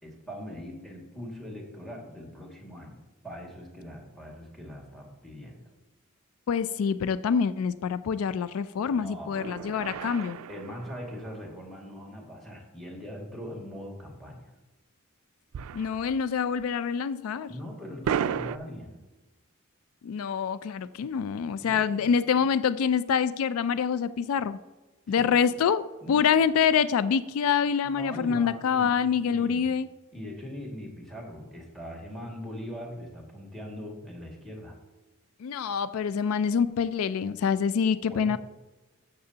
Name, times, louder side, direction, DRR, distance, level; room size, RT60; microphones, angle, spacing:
voice 1, 0.0-5.6 8.8-9.6 10.5-14.5 17.5-19.0 21.6-22.1 25.2-25.4 26.0-26.4 27.8-29.7 30.1-34.8 38.1-38.4, equal, ahead, 0 dB, 2.0 m, -41 dB
voice 2, 6.5-10.4 15.7-17.5 20.0-24.6 25.1-25.8 26.1-29.9 35.4-38.4, left 7 dB, 80° left, 15 dB, 0.3 m, -26 dB
sound 1, 9.3-11.8 15.5-16.3 16.6-16.7 18.0-18.6, right 8 dB, 85° right, 0.3 m, -34 dB
13.5 x 6.8 x 2.8 m, 1.2 s
head